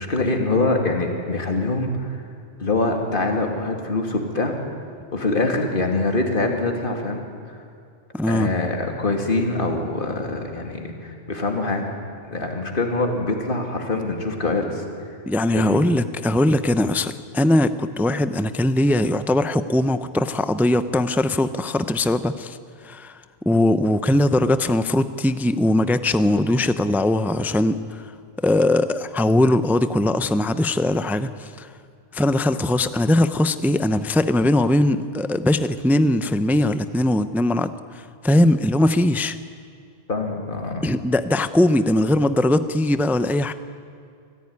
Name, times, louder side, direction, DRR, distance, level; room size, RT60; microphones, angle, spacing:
voice 1, 0.0-2.2 2.6-4.5 5.1-7.6 8.3-11.9 12.2-14.8 15.5-15.8 40.1-40.9, left 2 dB, 45° left, 2 dB, 2.6 m, -24 dB
voice 2, 8.1-8.5 15.3-22.6 22.8-23.2 23.5-28.0 28.4-31.7 32.1-39.4 40.8-43.5, left 1 dB, ahead, 12 dB, 0.4 m, -20 dB
25.0 x 15.5 x 9.7 m, 2.4 s
omnidirectional pair, 1.2 m